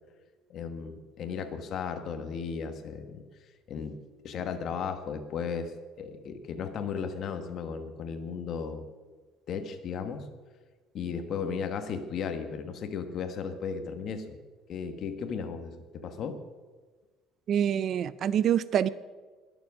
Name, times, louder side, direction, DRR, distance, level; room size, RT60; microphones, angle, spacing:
voice 1, 0.5-3.2 3.7-4.0 4.2-8.9 9.5-10.3 10.9-14.4 14.7-16.4, left 6 dB, 40° left, 7 dB, 1.3 m, -35 dB
voice 2, 17.5-18.9, right 9 dB, 40° right, 18 dB, 0.3 m, -26 dB
21.0 x 7.2 x 6.3 m, 1.4 s
cardioid pair, 170°, 0 cm